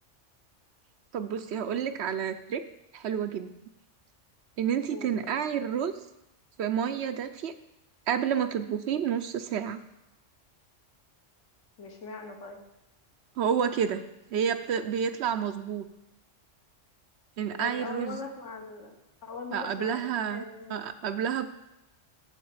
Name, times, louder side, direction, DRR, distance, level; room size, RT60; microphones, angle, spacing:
voice 1, 1.1-2.6 2.9-3.5 4.6-5.9 6.6-7.5 8.1-9.8 13.4-14.0 14.3-15.9 17.4-18.2 19.5-20.4 20.7-21.5, right 8 dB, 65° right, 10 dB, 0.8 m, -29 dB
voice 2, 4.9-5.3 11.8-12.6 17.5-18.9 19.2-20.8, left 4 dB, 75° left, 3 dB, 1.5 m, -40 dB
9.0 x 7.1 x 4.7 m, 0.90 s
omnidirectional pair, 1.3 m